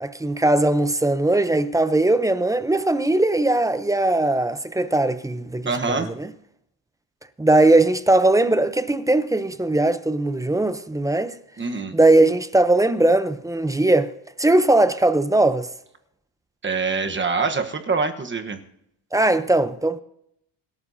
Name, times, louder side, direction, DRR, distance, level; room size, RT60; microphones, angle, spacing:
voice 1, 0.0-6.3 7.4-11.3 11.9-14.1 14.4-15.7 19.1-20.0, right 2 dB, 5° right, 0.6 m, -19 dB
voice 2, 5.6-6.1 11.6-12.0 16.6-18.6, right 4 dB, 25° right, 1.2 m, -24 dB
26.0 x 12.5 x 2.7 m
cardioid pair, 125°, 45 cm